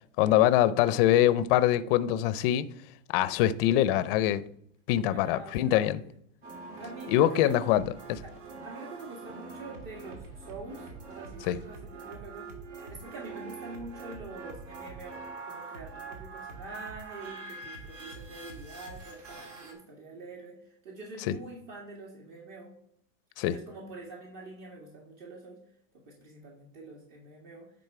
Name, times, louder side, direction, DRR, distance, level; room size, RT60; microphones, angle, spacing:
voice 1, 0.2-2.7 3.1-4.4 4.9-6.0 7.1-8.2 11.4-11.6 23.4-23.6, left 12 dB, 45° left, 0.5 m, -24 dB
voice 2, 5.1-6.1 6.8-7.7 8.2-8.3 8.6-12.5 12.9-22.7 23.5-25.6 25.9-27.7, right 2 dB, 45° right, 2.1 m, -45 dB
sound 1, 6.4-19.7, right 4 dB, 70° right, 2.6 m, -44 dB
10.0 x 3.8 x 4.7 m
supercardioid pair, 150°, 39 cm